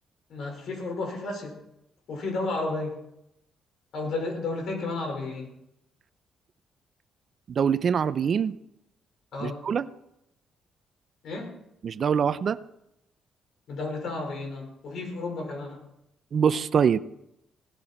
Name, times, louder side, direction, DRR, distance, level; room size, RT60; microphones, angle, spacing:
voice 1, 0.3-1.6 2.1-3.0 3.9-5.5 9.3-9.6 11.2-11.5 13.7-15.8, left 3 dB, 70° left, 2 dB, 5.3 m, -32 dB
voice 2, 7.5-8.6 9.4-9.9 11.8-12.6 16.3-17.0, right 7 dB, 50° right, 14 dB, 0.7 m, -24 dB
18.0 x 12.5 x 4.5 m, 0.82 s
cardioid pair, 90°, 0 cm